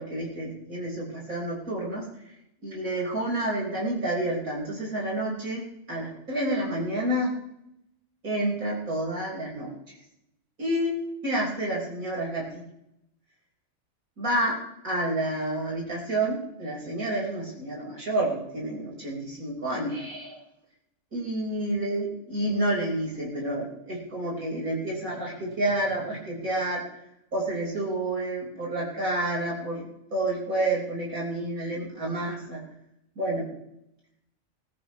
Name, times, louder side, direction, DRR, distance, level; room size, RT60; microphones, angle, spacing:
voice 1, 0.0-2.1 2.6-7.3 8.2-9.7 10.6-11.0 11.2-12.7 14.2-14.6 14.8-20.4 21.1-26.8 27.3-32.6 33.2-33.5, right 1 dB, 90° right, -4 dB, 5.7 m, -29 dB
21.0 x 13.5 x 3.3 m, 0.82 s
omnidirectional pair, 1.4 m